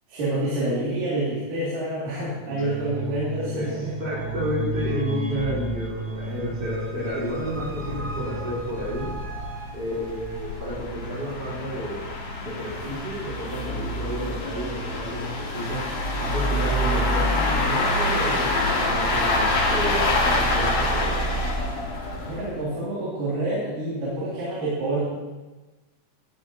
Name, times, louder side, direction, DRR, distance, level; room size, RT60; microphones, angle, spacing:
voice 1, 0.1-3.8 22.3-25.0, right 1 dB, 85° right, -8 dB, 3.9 m, -27 dB
sound 1, 2.3-10.6, right 1 dB, 60° right, 0.8 m, -33 dB
voice 2, 2.4-2.8 3.5-3.7 4.0-9.1 9.7-12.0 12.4-15.8 16.2-21.2, equal, 30° right, -7 dB, 3.9 m, -31 dB
sound 2, 6.1-6.2 6.5-6.6 7.0-7.1 7.4-7.5 8.2-22.5, left 1 dB, 75° left, 3.5 m, -26 dB
13.5 x 9.9 x 2.7 m, 1.2 s
omnidirectional pair, 3.7 m